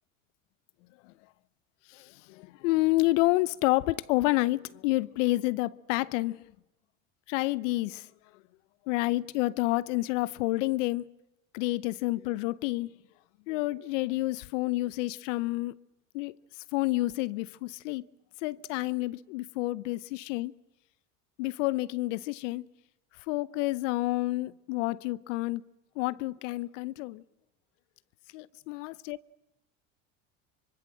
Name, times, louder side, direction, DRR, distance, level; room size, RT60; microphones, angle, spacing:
voice 1, 1.9-6.5 7.3-8.1 8.9-11.0 11.5-12.9 13.5-15.7 16.1-16.4 16.7-18.0 18.4-20.5 21.4-22.6 23.3-25.6 26.0-27.2 28.3-29.2, left 20 dB, 70° left, 0.8 m, -29 dB
25.0 x 24.0 x 7.6 m
hypercardioid pair, 85°, 39 cm